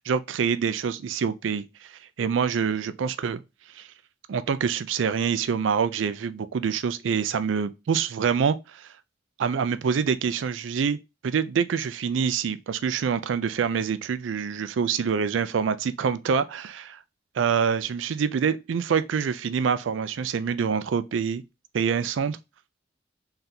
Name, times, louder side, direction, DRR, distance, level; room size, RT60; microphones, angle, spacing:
voice 1, 0.1-1.9 2.2-3.4 3.7-3.9 4.3-8.9 9.4-11.0 11.2-17.0 17.4-21.4 21.7-22.4, right 6 dB, 90° right, 0.4 m, -26 dB
3.9 x 3.3 x 2.8 m
head